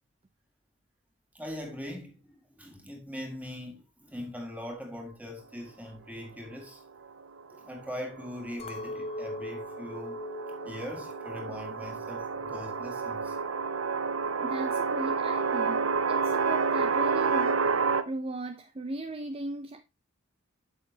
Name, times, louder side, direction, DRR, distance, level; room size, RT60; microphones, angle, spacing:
voice 1, 1.3-2.2 2.6-6.8 7.5-10.2 10.6-13.4, left 1 dB, 5° right, 1.9 m, -41 dB
sound 1, 7.9-18.0, right 5 dB, 90° right, 0.6 m, -30 dB
Chink clink, 8.6-13.0 13.3-13.9, left 1 dB, 30° left, 0.6 m, -42 dB
voice 2, 14.4-17.6 18.1-19.8, right 2 dB, 30° right, 0.5 m, -37 dB
8.7 x 6.7 x 2.8 m
head